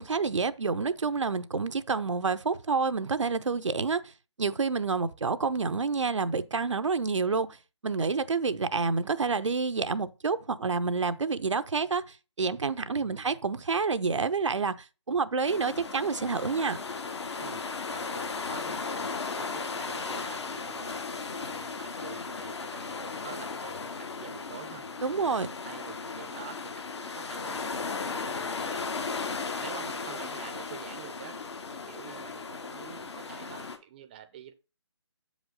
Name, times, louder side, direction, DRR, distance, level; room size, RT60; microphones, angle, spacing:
voice 1, 0.0-4.1 4.4-7.6 7.8-16.8 25.0-25.5, right 4 dB, 80° right, 0.6 m, -28 dB
voice 2, 13.0-13.3 17.4-17.6 17.9-21.0 21.4-24.9 25.2-27.7 28.1-28.9 29.6-31.4 31.7-34.5, right 10 dB, 20° right, 0.5 m, -48 dB
sound 1, 15.4-33.8, left 4 dB, 65° left, 1.1 m, -36 dB
7.1 x 5.1 x 3.8 m
figure-of-eight pair, 150°, 15 cm